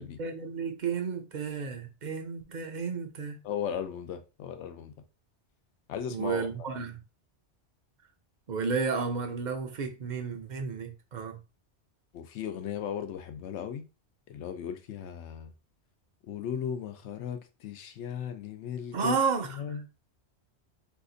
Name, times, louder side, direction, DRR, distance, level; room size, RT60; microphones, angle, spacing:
voice 1, 0.0-3.4 6.1-7.0 8.5-11.4 18.9-19.6, right 5 dB, 50° right, 0.7 m, -32 dB
voice 2, 3.4-4.9 5.9-6.7 12.1-13.9 14.3-15.5 16.3-19.2 19.5-19.9, left 8 dB, 90° left, 0.9 m, -36 dB
2.8 x 2.4 x 3.8 m
omnidirectional pair, 1.2 m